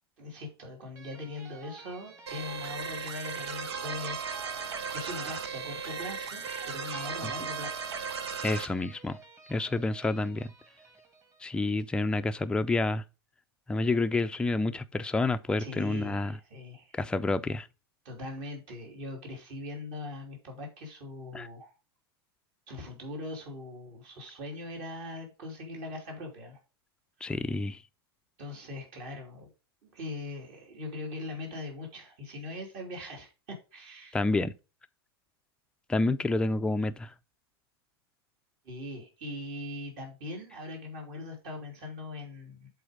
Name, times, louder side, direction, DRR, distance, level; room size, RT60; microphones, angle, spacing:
voice 1, 0.2-7.8 15.6-17.0 18.0-21.7 22.7-26.6 27.2-27.3 28.4-29.5 29.8-34.2 38.6-42.7, left 2 dB, 50° right, 2.9 m, -41 dB
sound 1, 1.0-11.7, right 4 dB, 20° right, 1.7 m, -51 dB
sound 2, 2.3-8.7, right 6 dB, 80° right, 1.0 m, -36 dB
voice 2, 8.4-9.2 9.5-10.5 11.4-13.0 13.7-16.3 16.9-17.7 21.3-21.5 27.2-27.8 34.1-34.5 35.9-37.1, left 2 dB, 5° left, 0.4 m, -29 dB
7.7 x 4.0 x 4.9 m
hypercardioid pair, 120°, 13 cm